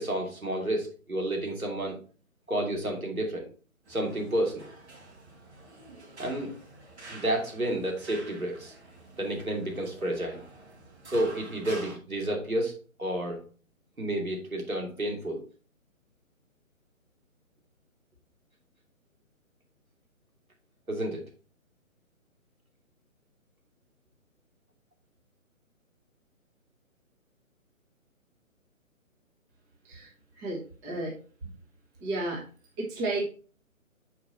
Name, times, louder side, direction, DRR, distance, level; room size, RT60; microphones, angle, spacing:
voice 1, 0.0-2.0 2.5-3.5 3.9-4.7 6.2-6.5 7.1-8.7 9.2-10.4 11.1-13.4 14.0-15.4 20.9-21.2, right 1 dB, 85° right, 1 dB, 2.8 m, -30 dB
sound 1, 3.9-12.0, right 2 dB, 50° right, 2.9 m, -48 dB
voice 2, 30.4-31.2 32.0-32.4 32.8-33.3, right 2 dB, 10° right, -3 dB, 1.1 m, -32 dB
6.4 x 4.7 x 4.2 m, 0.38 s
figure-of-eight pair, 140°, 41 cm